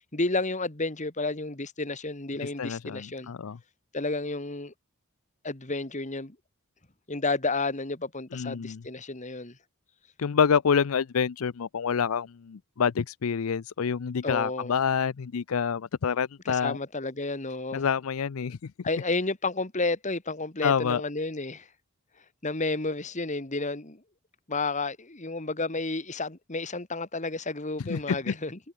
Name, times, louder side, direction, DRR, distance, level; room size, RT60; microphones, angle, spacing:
voice 1, 0.1-3.3 3.9-4.7 5.4-6.4 7.1-9.6 14.2-14.7 16.5-17.9 18.8-21.7 22.4-24.0 24.5-28.6, left 3 dB, 35° left, 2.0 m, -31 dB
voice 2, 2.4-3.6 8.3-8.8 10.2-16.8 17.7-18.6 20.6-21.0 27.9-28.3, left 6 dB, 70° left, 0.5 m, -27 dB
head